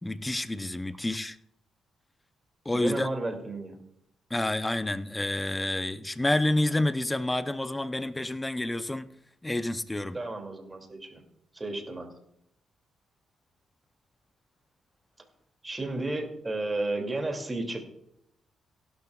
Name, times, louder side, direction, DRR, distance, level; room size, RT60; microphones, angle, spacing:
voice 1, 0.0-1.4 2.7-3.1 4.3-9.1 9.4-10.2, left 1 dB, 15° left, 0.6 m, -29 dB
voice 2, 2.7-3.8 10.1-11.2 11.5-12.1 15.6-17.9, right 2 dB, 20° right, 2.5 m, -33 dB
16.5 x 11.5 x 2.4 m
cardioid pair, 95°, 0 cm